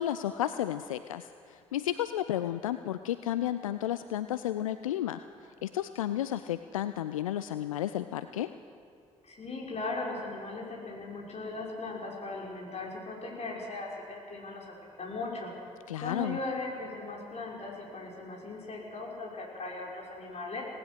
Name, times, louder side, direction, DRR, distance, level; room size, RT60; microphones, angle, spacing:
voice 1, 0.0-5.2 5.6-8.5 15.9-16.4, left 12 dB, 80° left, 11 dB, 0.4 m, -32 dB
voice 2, 9.2-15.5 16.0-20.6, left 3 dB, 40° left, -2 dB, 6.0 m, -38 dB
26.0 x 18.5 x 6.4 m, 2.4 s
figure-of-eight pair, 45°, 17 cm